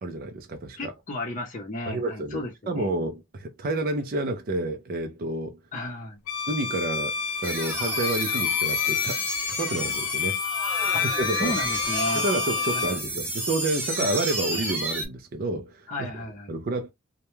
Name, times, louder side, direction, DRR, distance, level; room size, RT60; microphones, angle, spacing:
voice 1, 0.0-0.9 1.9-5.6 6.5-7.2 7.4-9.2 9.5-10.4 10.8-11.5 12.1-15.9 16.5-16.9, right 2 dB, 45° right, 0.4 m, -29 dB
voice 2, 0.8-3.0 5.7-6.2 10.9-11.0 11.3-12.2 12.7-13.0 15.9-16.5, left 1 dB, 40° left, 0.6 m, -33 dB
Bowed string instrument, 6.3-13.1, left 8 dB, 85° left, 0.4 m, -29 dB
sound 1, 7.4-15.1, right 2 dB, 10° right, 0.8 m, -31 dB
2.2 x 2.1 x 3.0 m
head